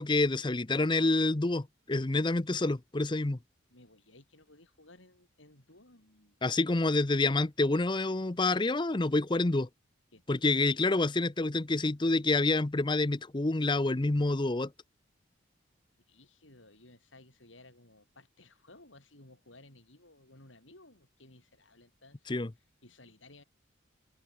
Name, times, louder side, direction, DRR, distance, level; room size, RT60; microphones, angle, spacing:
voice 1, 0.0-3.4 6.4-9.7 10.3-14.7 22.3-22.5, left 2 dB, 25° left, 0.6 m, -28 dB
voice 2, 3.7-6.9 10.1-10.8 16.1-23.4, left 2 dB, 75° left, 6.8 m, -58 dB
open air
head